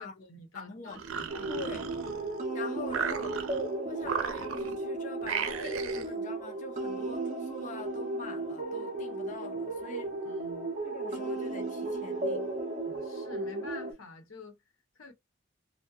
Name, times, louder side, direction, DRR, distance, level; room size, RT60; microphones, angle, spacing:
voice 1, 0.0-1.7 10.2-10.7 12.8-14.6 14.9-15.1, left 3 dB, 80° left, 1.0 m, -48 dB
voice 2, 0.5-1.0 1.5-1.9 2.5-3.5 3.9-10.2 10.8-12.5, left 4 dB, 40° left, 0.5 m, -44 dB
sound 1, 0.9-2.4 2.9-3.7 4.0-4.8 5.2-6.1, right 6 dB, 85° right, 0.5 m, -35 dB
sound 2, 1.3-13.9, right 2 dB, 35° right, 0.6 m, -35 dB
2.7 x 2.1 x 2.3 m
head